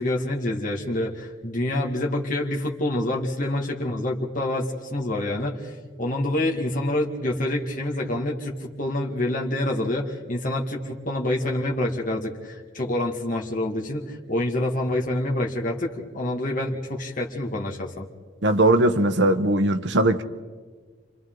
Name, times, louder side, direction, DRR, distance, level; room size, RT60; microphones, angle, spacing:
voice 1, 0.0-18.1, left 1 dB, 45° left, -2 dB, 2.0 m, -27 dB
voice 2, 18.4-20.2, right 1 dB, 65° right, 8 dB, 1.1 m, -19 dB
29.5 x 25.5 x 3.9 m, 1.5 s
head